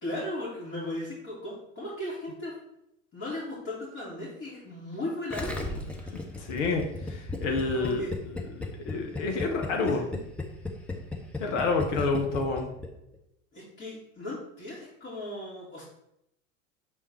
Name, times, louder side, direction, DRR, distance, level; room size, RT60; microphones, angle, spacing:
voice 1, 0.0-2.5 3.1-6.4 7.7-8.1 9.9-10.0 11.9-12.0 13.5-15.8, left 1 dB, 35° left, -9 dB, 2.4 m, -37 dB
Gurgling, 5.3-12.9 13.1-13.2, left 2 dB, 5° left, 0.9 m, -35 dB
voice 2, 6.4-8.0 8.9-10.2 11.4-12.7, left 3 dB, 60° left, 2 dB, 1.0 m, -28 dB
6.4 x 3.6 x 4.1 m, 0.81 s
figure-of-eight pair, 75°, 40 cm